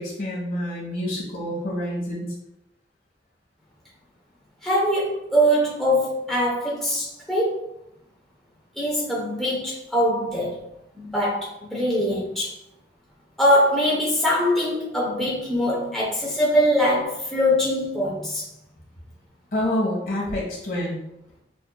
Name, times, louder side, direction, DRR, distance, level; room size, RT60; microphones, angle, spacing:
voice 1, 0.0-2.3 19.5-21.0, left 1 dB, 50° left, -4 dB, 1.5 m, -27 dB
voice 2, 4.6-7.7 8.7-10.7 10.9-12.6 13.4-18.5, equal, ahead, -6 dB, 0.8 m, -22 dB
6.7 x 2.7 x 2.3 m, 0.83 s
head